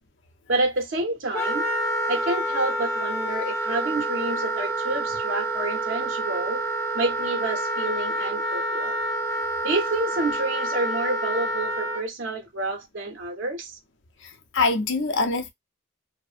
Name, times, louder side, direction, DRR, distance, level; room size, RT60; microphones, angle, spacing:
voice 1, 0.5-1.7 2.1-6.6 6.9-9.0 9.6-13.8, right 2 dB, 75° right, 0.6 m, -28 dB
Wind instrument woodwind instrument, 1.3-12.0, right 1 dB, 15° left, 0.5 m, -28 dB
voice 2, 14.2-15.5, left 3 dB, 60° left, 0.5 m, -25 dB
2.5 x 2.0 x 2.4 m
head